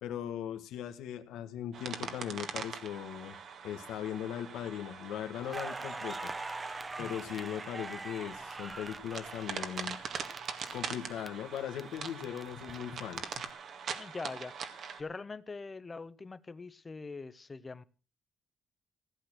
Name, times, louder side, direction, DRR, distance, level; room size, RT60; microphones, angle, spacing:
voice 1, 0.0-3.4 3.6-6.3 7.0-10.0 10.7-13.5, left 10 dB, 85° left, 1.5 m, -39 dB
sound 1, 1.7-15.0, right 6 dB, 60° right, 2.0 m, -43 dB
Crackle, 5.4-11.3 11.6-13.3, right 3 dB, 25° right, 1.0 m, -43 dB
voice 2, 14.0-17.8, left 4 dB, 30° left, 1.0 m, -43 dB
16.0 x 8.6 x 6.3 m
cardioid pair, 90°, 0 cm